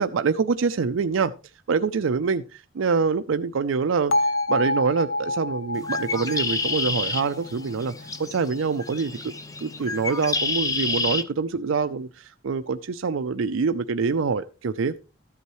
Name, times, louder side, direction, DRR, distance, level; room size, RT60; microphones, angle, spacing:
voice 1, 0.0-1.3 1.7-7.9 8.2-9.3 9.6-15.0, right 5 dB, 80° right, 11 dB, 0.5 m, -25 dB
Bell, 4.1-8.2, left 2 dB, 90° left, 0.8 m, -28 dB
Bird, 5.7-11.2, left 3 dB, 20° left, 0.8 m, -29 dB
14.0 x 8.4 x 3.1 m, 0.33 s
head